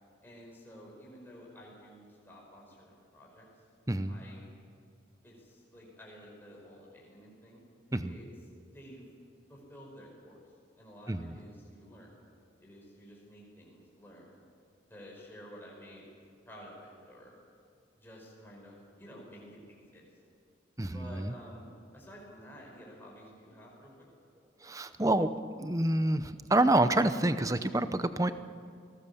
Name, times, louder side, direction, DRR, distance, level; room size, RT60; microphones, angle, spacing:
voice 1, 0.2-3.5 4.1-4.5 5.2-7.6 8.0-8.3 8.7-9.0 9.5-10.4 10.8-12.1 12.6-14.4 14.9-16.1 16.5-17.3 17.9-20.1 20.9-24.1, equal, 10° left, -3 dB, 5.3 m, -51 dB
voice 2, 20.8-21.3 24.6-25.3 25.6-28.3, right 1 dB, 15° right, 11 dB, 0.7 m, -27 dB
29.5 x 18.5 x 7.1 m, 2.2 s
head